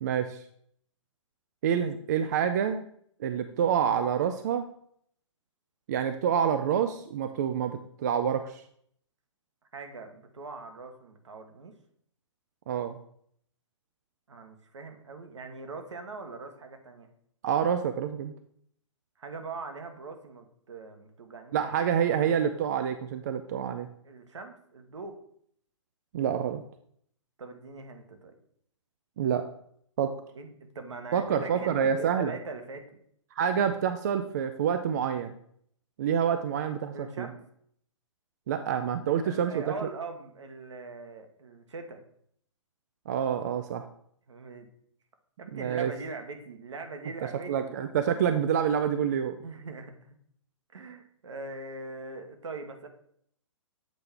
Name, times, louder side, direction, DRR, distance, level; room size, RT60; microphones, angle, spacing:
voice 1, 0.0-0.4 1.6-2.8 3.2-4.6 5.9-8.6 12.7-13.0 17.4-18.3 21.5-23.9 26.1-26.6 29.2-29.5 30.0-30.2 31.1-32.3 33.3-35.4 36.0-37.3 38.5-39.6 43.1-43.9 45.5-45.9 47.5-49.3, right 8 dB, 35° right, 8 dB, 0.3 m, -27 dB
voice 2, 9.7-11.7 14.3-17.1 19.2-21.6 24.0-25.2 27.4-28.3 30.3-30.5 30.7-31.8 32.2-33.0 36.9-37.4 39.2-42.0 44.3-44.7 45.4-47.8 49.4-50.2 50.7-52.9, right 3 dB, 65° right, 5 dB, 1.1 m, -41 dB
7.9 x 4.3 x 3.6 m, 0.66 s
figure-of-eight pair, 125°, 17 cm